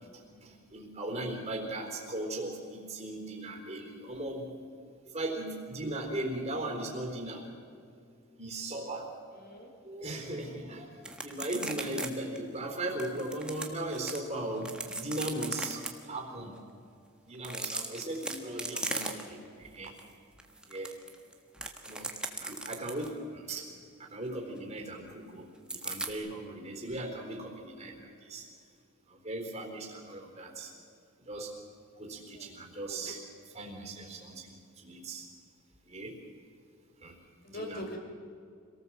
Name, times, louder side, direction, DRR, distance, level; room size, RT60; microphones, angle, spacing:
voice 1, 0.1-4.5 5.0-7.5 8.4-9.1 9.8-10.9 11.2-15.8 16.1-16.5 17.2-19.9 20.7-21.0 21.8-23.7 24.0-28.5 29.1-30.7 31.2-31.5 32.0-33.2 33.5-35.3 35.9-36.2 37.0-37.2 37.5-37.8, right 1 dB, 30° right, 1 dB, 4.0 m, -38 dB
voice 2, 9.3-9.7 10.3-10.5 32.3-32.5 37.4-38.0, left 1 dB, 45° left, 3 dB, 3.6 m, -42 dB
sound 1, 11.0-12.1 12.4-12.5 13.0-14.2 14.6-15.9 17.3-19.5 19.8-20.0 20.4-23.1 25.7-26.1, right 2 dB, 5° right, 1.6 m, -37 dB
26.0 x 18.5 x 7.6 m, 2.4 s
head